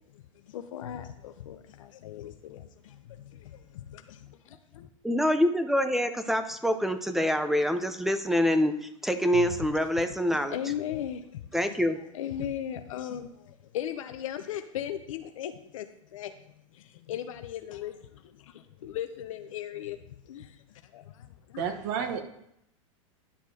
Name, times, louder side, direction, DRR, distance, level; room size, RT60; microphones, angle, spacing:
voice 1, 0.1-4.9 9.3-11.8 12.1-17.9 18.8-21.7, left 10 dB, 75° left, 8 dB, 0.6 m, -38 dB
voice 2, 5.0-10.5 11.5-12.0, equal, ahead, 9 dB, 0.5 m, -26 dB
voice 3, 21.6-22.2, right 7 dB, 55° right, 6 dB, 1.1 m, -30 dB
10.5 x 6.0 x 2.8 m, 0.76 s
hypercardioid pair, 105°, 17 cm